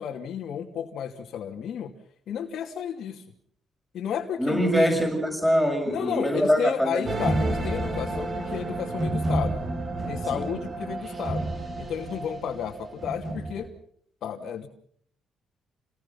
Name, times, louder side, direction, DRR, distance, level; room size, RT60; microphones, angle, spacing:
voice 1, 0.0-1.9 2.3-3.2 3.9-5.0 5.8-9.6 10.1-11.5 11.8-13.7 14.2-14.7, left 8 dB, 75° left, 0 dB, 2.7 m, -32 dB
voice 2, 4.4-7.1 10.3-10.5, equal, ahead, 4 dB, 6.9 m, -23 dB
sound 1, 7.0-13.7, right 2 dB, 40° right, 7.1 m, -30 dB
29.5 x 20.0 x 5.7 m, 0.63 s
cardioid pair, 90°, 0 cm